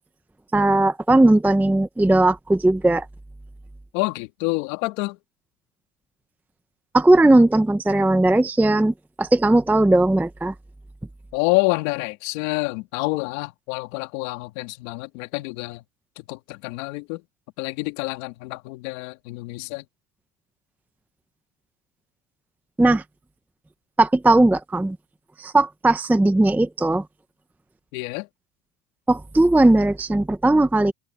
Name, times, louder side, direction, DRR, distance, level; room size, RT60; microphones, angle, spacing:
voice 1, 0.5-3.1 6.9-10.5 22.8-23.0 24.0-25.0 25.4-27.0 29.1-30.9, right 2 dB, 5° right, 0.6 m, -18 dB
voice 2, 3.9-5.2 11.3-15.8 16.2-17.2 17.6-19.9 27.9-28.3, left 24 dB, 85° left, 2.6 m, -27 dB
open air
supercardioid pair, 125°, 40 cm